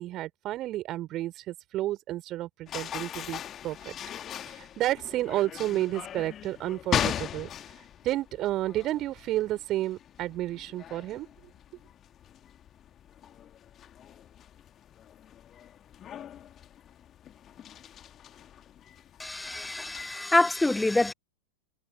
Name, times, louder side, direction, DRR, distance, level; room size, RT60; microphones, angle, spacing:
voice 1, 0.0-3.9 4.5-7.5 8.0-11.3, right 15 dB, 35° right, 3.9 m, -31 dB
sound 1, 2.7-20.1, left 10 dB, 25° left, 2.1 m, -39 dB
voice 2, 19.2-21.1, left 2 dB, 5° left, 0.8 m, -26 dB
figure-of-eight pair, 90°, 0 cm